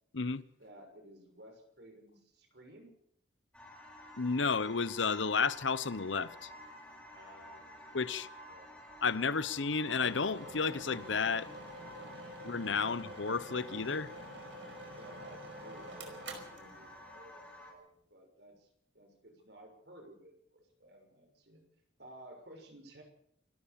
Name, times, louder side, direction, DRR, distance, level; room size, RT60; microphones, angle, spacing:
voice 1, 0.6-2.9 7.0-7.7 8.5-8.7 14.9-18.7 18.9-21.6 22.0-23.0, right 1 dB, 60° right, 6.5 m, -55 dB
sound 1, 3.5-17.7, left 1 dB, 5° left, 6.9 m, -52 dB
voice 2, 4.2-6.5 7.9-8.3 9.0-11.5 12.4-14.1, left 5 dB, 85° left, 0.9 m, -32 dB
sound 2, 9.8-17.5, right 1 dB, 75° right, 5.1 m, -48 dB
28.5 x 13.0 x 7.0 m
head